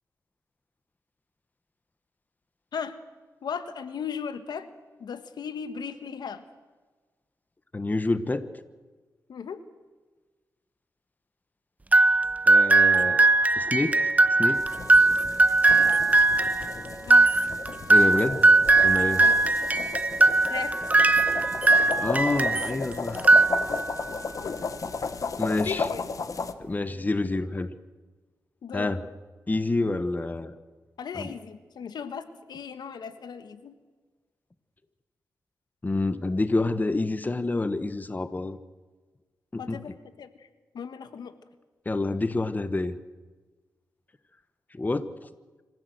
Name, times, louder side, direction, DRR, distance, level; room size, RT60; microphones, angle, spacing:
voice 1, 3.4-4.7 5.0-6.4 9.3-9.6 15.8-16.0 17.0-17.3 19.2-19.4 20.5-21.0 24.4-24.6 25.5-26.0 28.6-28.9 31.0-33.7 39.6-40.5 40.7-41.3, left 6 dB, 85° left, 11 dB, 1.5 m, -36 dB
voice 2, 7.7-8.6 12.5-13.3 13.6-14.1 14.4-14.6 17.9-18.5 18.8-19.2 22.0-23.3 25.4-25.9 26.6-27.7 28.7-29.1 29.5-30.5 31.1-31.3 35.8-38.6 39.5-39.8 41.8-42.9 44.7-45.1, left 2 dB, 25° left, 13 dB, 1.1 m, -28 dB
sound 1, 11.9-22.8 23.2-24.0, right 2 dB, 20° right, 0.8 m, -20 dB
sound 2, 14.5-26.5, left 4 dB, 50° left, 1.3 m, -34 dB
26.0 x 15.5 x 7.9 m, 1.3 s
cardioid pair, 90°, 7 cm